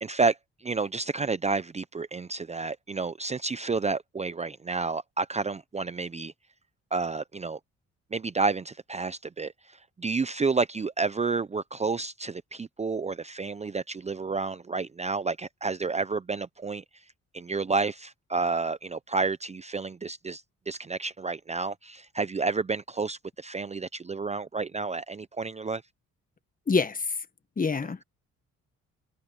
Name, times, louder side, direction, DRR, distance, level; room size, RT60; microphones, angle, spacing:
voice 1, 0.0-6.3 6.9-7.6 8.1-16.8 17.3-25.8, right 4 dB, 20° right, 0.6 m, -30 dB
voice 2, 26.7-27.1 27.6-28.0, left 4 dB, 30° left, 1.5 m, -26 dB
cardioid pair, 90°, 30 cm